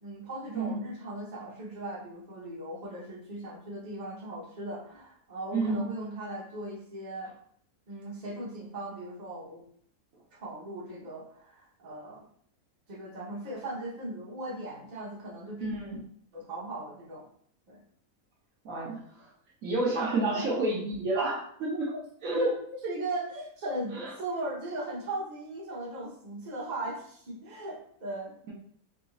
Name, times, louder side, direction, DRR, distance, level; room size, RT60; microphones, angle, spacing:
voice 1, 0.0-7.3 7.9-9.6 10.3-12.2 12.9-15.7 16.3-17.3 17.7-17.8 20.3-20.4 21.7-21.8 22.3-22.5 22.8-28.3, right 1 dB, 30° right, -6 dB, 1.0 m, -38 dB
voice 2, 5.5-5.9 15.6-16.0 18.6-19.3 19.6-21.9 22.2-22.6 23.9-24.1, right 2 dB, 65° right, -4 dB, 1.1 m, -30 dB
3.9 x 2.6 x 2.4 m, 0.63 s
omnidirectional pair, 1.6 m